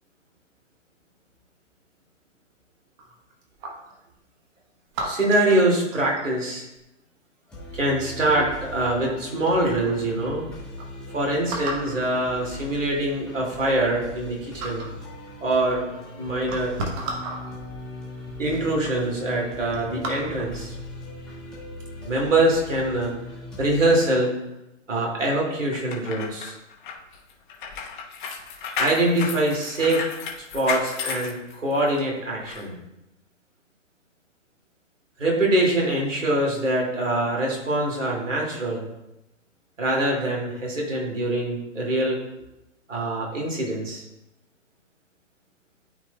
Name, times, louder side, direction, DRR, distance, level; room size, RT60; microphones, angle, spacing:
sound 1, 3.0-4.0 4.9-6.4 8.0-8.4 9.1-9.2 9.4-10.0 10.5-10.6 10.8-10.9 11.5-12.0 13.0-13.1 13.5-14.3 14.6-15.0 15.9-16.0 16.4-17.4 18.3-18.4 18.7-19.0 19.3-20.6 21.1-21.3, right 2 dB, 25° right, 1.0 m, -34 dB
voice 1, 5.0-6.7 7.7-10.4 11.1-14.8 15.4-15.8 16.2-16.7 18.4-20.8 22.0-23.1 23.6-24.3 24.9-26.5 28.8-30.1 30.5-32.7 35.2-38.8 39.8-42.2 42.9-44.0, right 1 dB, 75° right, -1 dB, 2.5 m, -24 dB
sound 2, 7.5-24.0, left 1 dB, ahead, 1.8 m, -39 dB
sound 3, 25.7-32.0 32.5-32.6, left 6 dB, 40° left, 1.2 m, -33 dB
12.5 x 4.2 x 2.3 m, 0.90 s
figure-of-eight pair, 125°, 38 cm